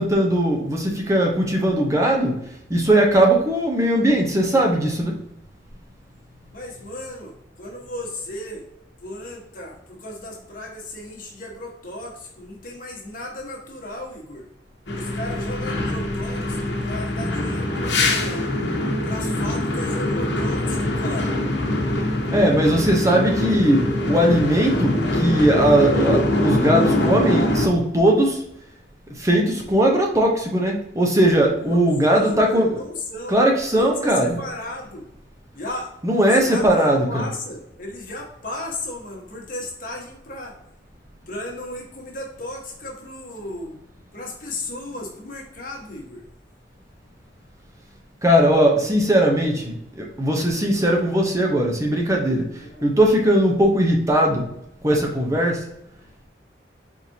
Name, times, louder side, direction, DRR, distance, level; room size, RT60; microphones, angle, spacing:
voice 1, 0.0-5.2 22.3-28.4 29.1-32.8 33.3-34.4 36.0-37.3 48.2-54.4 54.8-55.7, right 1 dB, 15° right, 1 dB, 0.7 m, -19 dB
voice 2, 6.5-8.6 9.0-14.4 14.9-18.5 19.0-21.4 31.6-33.4 33.8-35.1 35.5-35.9 36.2-40.5 41.3-43.8 44.1-46.2 52.6-52.9, left 1 dB, 50° left, -1 dB, 1.3 m, -35 dB
sound 1, 14.9-27.7, left 1 dB, 80° left, 1.0 m, -23 dB
4.6 x 4.1 x 2.7 m, 0.77 s
head